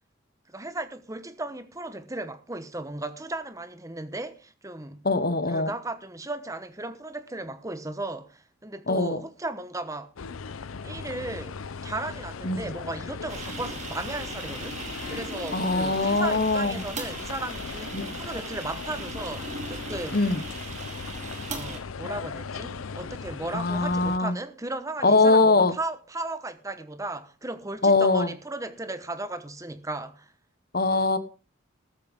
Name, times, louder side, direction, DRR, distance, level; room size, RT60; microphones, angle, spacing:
voice 1, 0.5-5.0 5.5-10.1 10.8-11.6 11.8-20.2 21.5-30.3, right 2 dB, 15° right, 1.0 m, -36 dB
voice 2, 5.0-5.7 8.9-9.2 12.4-12.6 15.5-16.8 17.9-18.1 20.1-20.4 23.5-24.3 25.0-25.8 27.8-28.3 30.7-31.2, left 3 dB, 50° left, 1.2 m, -22 dB
sound 1, 10.2-24.2, left 5 dB, 90° left, 0.6 m, -38 dB
sound 2, 13.3-21.8, right 3 dB, 35° right, 2.3 m, -39 dB
14.0 x 13.5 x 3.6 m
head